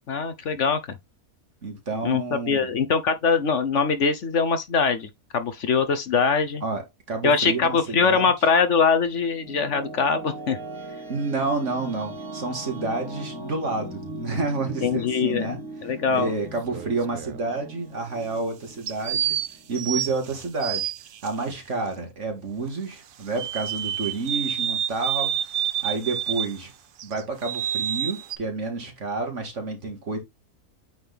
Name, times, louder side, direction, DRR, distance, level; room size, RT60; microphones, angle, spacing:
voice 1, 0.1-1.0 2.0-6.6 7.2-10.6 14.8-16.3, left 5 dB, 60° left, 1.1 m, -23 dB
voice 2, 1.6-2.7 6.6-8.3 11.1-15.6 16.1-19.4 19.7-20.9 21.2-25.3 25.8-26.7 27.0-30.2, right 3 dB, 55° right, 2.2 m, -29 dB
sound 1, 9.1-19.8, right 1 dB, 15° right, 2.9 m, -39 dB
sound 2, 16.4-17.4 18.9-21.3 23.4-26.6 27.0-28.4, right 10 dB, 80° right, 0.4 m, -28 dB
8.7 x 4.0 x 3.4 m
omnidirectional pair, 1.5 m